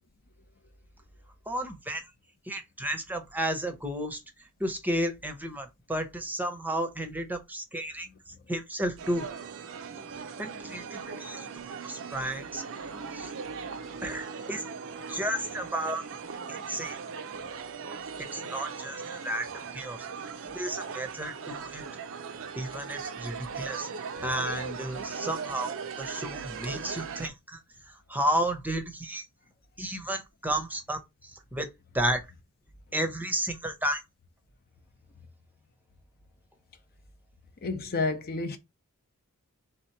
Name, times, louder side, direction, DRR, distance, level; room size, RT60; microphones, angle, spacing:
voice 1, 1.5-2.0 2.5-4.2 4.6-8.1 8.5-9.2 10.4-11.5 11.8-12.6 13.1-13.3 14.0-14.6 15.1-16.1 16.5-17.0 18.3-20.1 20.5-21.8 22.6-23.9 24.2-27.6 27.9-29.3 29.8-31.0 31.5-31.7 31.9-32.3 32.9-34.0, right 1 dB, 10° right, 0.7 m, -32 dB
sound 1, 9.0-27.3, right 5 dB, 60° right, 0.5 m, -39 dB
voice 2, 37.6-38.6, left 3 dB, 45° left, 0.6 m, -30 dB
3.5 x 2.9 x 4.4 m
head